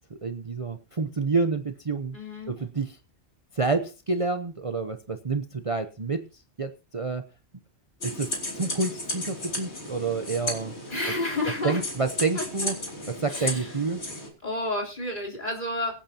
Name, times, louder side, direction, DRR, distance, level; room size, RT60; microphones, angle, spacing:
voice 1, 0.2-2.2 2.5-2.9 3.5-6.2 6.6-7.2 8.0-8.3 8.6-10.7 11.6-12.7 13.1-14.0, right 4 dB, 30° right, 7 dB, 0.8 m, -28 dB
voice 2, 2.1-2.6 10.9-11.8 12.3-12.5 13.3-13.8 14.4-15.9, left 2 dB, 40° left, -1 dB, 3.8 m, -30 dB
sound 1, 8.0-14.3, left 2 dB, 65° left, 3.4 m, -34 dB
23.5 x 8.8 x 2.8 m, 0.32 s
omnidirectional pair, 1.2 m